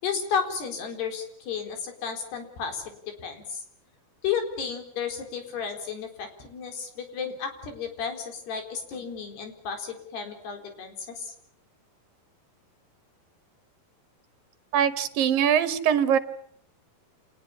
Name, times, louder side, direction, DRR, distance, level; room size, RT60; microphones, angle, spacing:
voice 1, 0.0-3.6 4.2-11.3, left 6 dB, 85° left, 5 dB, 6.2 m, -33 dB
voice 2, 14.7-16.2, right 8 dB, 65° right, 13 dB, 2.9 m, -22 dB
28.0 x 19.5 x 8.7 m, 0.66 s
omnidirectional pair, 4.6 m